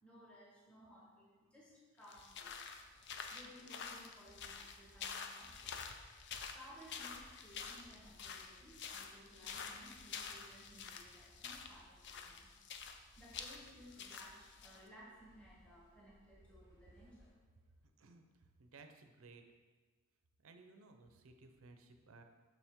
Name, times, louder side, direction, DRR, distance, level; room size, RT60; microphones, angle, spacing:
voice 1, 0.0-2.8 3.3-6.0 6.5-12.5 13.2-17.3, equal, 5° left, -6 dB, 1.2 m, -59 dB
sound 1, 2.0-14.8, left 6 dB, 55° left, 0.5 m, -48 dB
sound 2, 2.2-17.3, equal, 35° left, 2.2 m, -66 dB
voice 2, 18.0-19.4 20.4-22.2, right 3 dB, 65° right, 6 dB, 0.6 m, -59 dB
7.2 x 5.9 x 3.6 m, 1.4 s
head